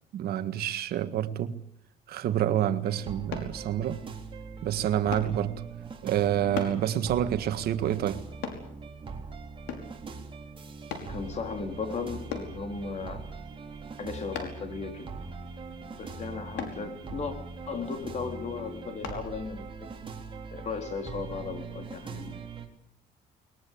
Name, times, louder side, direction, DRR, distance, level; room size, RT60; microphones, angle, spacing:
voice 1, 0.1-1.6 2.1-4.0 4.6-5.6 6.0-8.2, right 11 dB, 65° right, 1.8 m, -28 dB
sound 1, 2.8-22.7, right 4 dB, 30° right, 4.1 m, -42 dB
sound 2, 3.3-3.5 5.1-5.4 6.6-6.8 8.4-8.7 9.7-10.0 10.9-11.1 12.3-12.6 14.3-14.7 16.6-16.8 19.0-19.2 19.8-19.9, left 7 dB, 85° left, 5.4 m, -36 dB
voice 2, 11.1-13.3 14.0-15.1 16.0-17.3 17.7-19.9 20.5-22.3, left 5 dB, 40° left, 4.2 m, -36 dB
22.0 x 21.5 x 8.7 m
cardioid pair, 110°, 17 cm